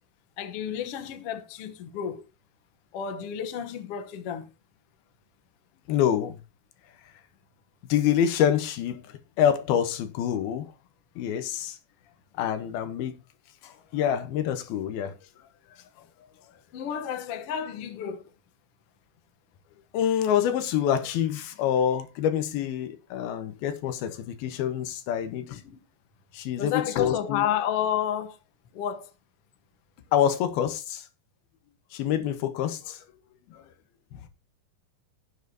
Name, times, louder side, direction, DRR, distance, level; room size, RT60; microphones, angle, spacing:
voice 1, 0.4-2.2 2.9-4.5 16.7-18.2 25.5-25.8 26.6-28.4 28.7-29.1, left 9 dB, 70° left, 1.4 m, -31 dB
voice 2, 5.9-6.4 7.9-9.0 9.4-10.7 11.2-11.8 12.4-13.1 13.6-15.1 19.9-25.6 26.3-27.4 30.1-31.0 31.9-33.0 33.5-33.6, left 9 dB, 90° left, 2.9 m, -26 dB
17.0 x 7.4 x 2.8 m
omnidirectional pair, 4.3 m